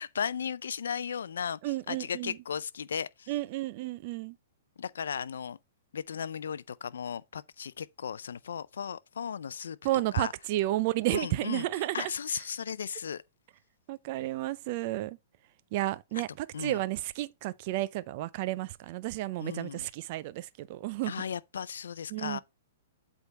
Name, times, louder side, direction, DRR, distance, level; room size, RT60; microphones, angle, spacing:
voice 1, 0.0-1.6 1.9-3.3 4.8-5.6 5.9-9.8 10.1-10.3 11.1-11.7 11.9-13.2 16.5-16.8 19.4-19.9 21.0-22.4, left 7 dB, 90° left, 0.4 m, -36 dB
voice 2, 1.6-2.4 3.3-4.4 9.8-12.1 13.9-15.2 15.7-21.1 22.1-22.4, right 16 dB, 40° right, 0.5 m, -32 dB
8.1 x 3.5 x 4.1 m
hypercardioid pair, 150°, 0 cm